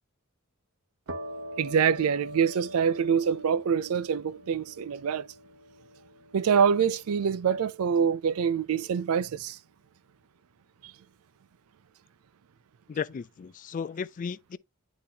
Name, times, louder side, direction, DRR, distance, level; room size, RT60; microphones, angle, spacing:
sound 1, 1.1-8.5, equal, 65° right, 0.9 m, -44 dB
voice 1, 1.6-5.3 6.3-9.6, right 7 dB, 80° right, 0.4 m, -25 dB
voice 2, 12.9-14.6, left 6 dB, 35° left, 0.3 m, -35 dB
10.0 x 4.0 x 2.8 m
head